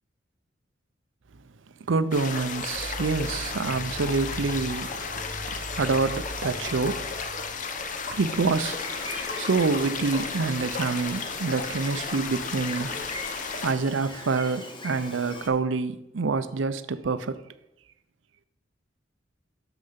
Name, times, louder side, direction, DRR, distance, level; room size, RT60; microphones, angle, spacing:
voice 1, 1.9-7.3 8.0-13.0 13.6-17.4, right 4 dB, 85° right, 0.6 m, -27 dB
sound 1, 2.1-13.7, left 5 dB, 45° left, 0.7 m, -34 dB
sound 2, 2.7-8.7, right 1 dB, 40° right, 0.9 m, -41 dB
Gull seagull, 8.6-15.5, left 2 dB, 25° left, 1.3 m, -40 dB
6.9 x 6.3 x 5.7 m
head